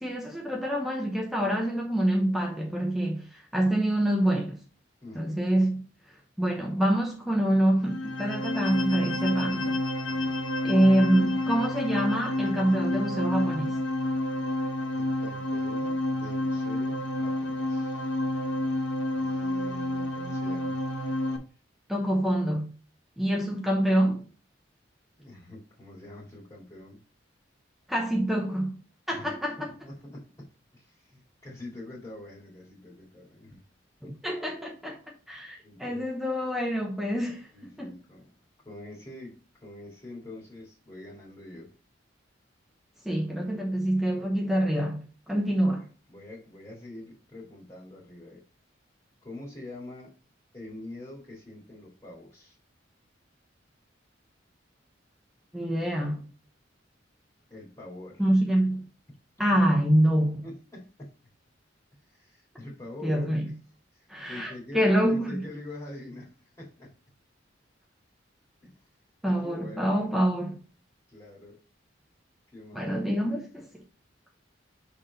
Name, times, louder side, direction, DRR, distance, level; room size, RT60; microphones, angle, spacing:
voice 1, 0.0-4.6 5.1-5.8 6.4-9.8 10.6-13.8 21.9-22.7 23.2-24.2 27.9-28.8 29.1-29.7 34.0-35.0 35.3-37.5 37.8-37.9 43.0-45.9 55.5-56.2 58.2-58.9 59.4-60.4 63.0-63.5 64.1-65.4 69.2-70.5 72.7-73.7, right 1 dB, ahead, 0.8 m, -26 dB
voice 2, 5.0-5.4 10.1-10.4 10.7-10.9 14.8-18.2 19.1-20.8 25.2-27.0 29.1-29.3 29.6-33.6 34.0-34.2 35.6-36.1 37.5-41.7 46.1-48.4 49.2-50.1 50.5-52.6 57.5-58.2 59.5-59.6 60.4-61.1 62.0-63.5 63.9-66.9 68.6-68.8 69.3-70.3 71.1-71.6 72.5-73.0, left 2 dB, 20° left, 2.1 m, -45 dB
sound 1, 7.8-21.4, left 1 dB, 90° left, 1.0 m, -29 dB
6.1 x 3.9 x 3.9 m
head